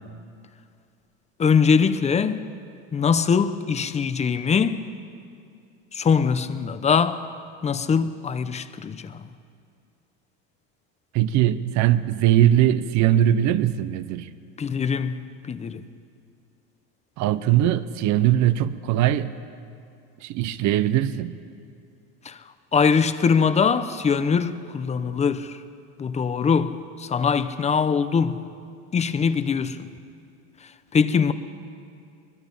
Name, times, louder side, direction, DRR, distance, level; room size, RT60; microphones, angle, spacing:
voice 1, 1.4-2.4 2.9-4.9 5.9-7.2 7.6-9.2 14.6-15.2 15.5-15.8 22.3-22.4 22.7-25.5 26.0-28.4 28.9-29.9 30.9-31.3, left 6 dB, 20° left, 0.8 m, -22 dB
voice 2, 11.1-14.3 17.2-19.3 20.2-21.4, right 12 dB, 55° right, 1.0 m, -21 dB
24.0 x 21.0 x 5.5 m
cardioid pair, 135°, 33 cm